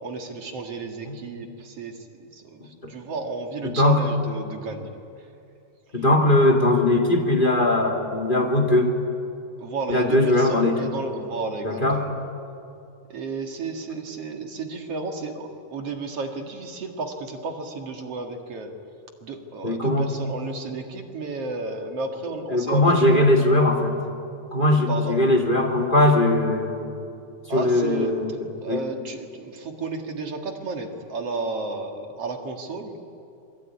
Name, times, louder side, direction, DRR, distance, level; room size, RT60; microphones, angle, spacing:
voice 1, 0.0-5.0 5.9-6.0 9.6-12.2 13.1-18.7 19.2-23.2 24.9-25.2 27.5-28.1 28.6-33.0, right 3 dB, 50° right, 4 dB, 2.7 m, -32 dB
voice 2, 3.6-4.0 5.9-9.0 9.9-10.9 11.6-12.0 19.6-20.1 22.5-24.0 24.5-26.9 27.5-28.9, left 1 dB, 15° left, 3 dB, 2.1 m, -20 dB
26.5 x 23.0 x 9.8 m, 2.6 s
omnidirectional pair, 4.0 m